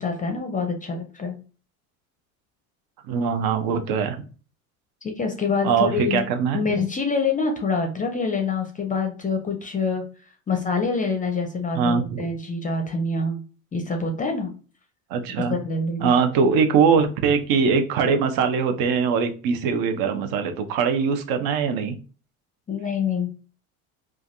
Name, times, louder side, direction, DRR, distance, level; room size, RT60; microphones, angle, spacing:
voice 1, 0.0-1.4 5.0-6.2 6.5-10.0 10.5-13.4 13.7-14.5 15.5-16.2 22.7-23.3, left 4 dB, 20° left, 4 dB, 0.6 m, -26 dB
voice 2, 3.1-4.2 5.6-6.6 11.7-12.3 15.1-15.5 16.0-22.0, right 6 dB, 55° right, 7 dB, 0.7 m, -22 dB
3.3 x 2.3 x 2.5 m, 0.37 s
hypercardioid pair, 85°, 43 cm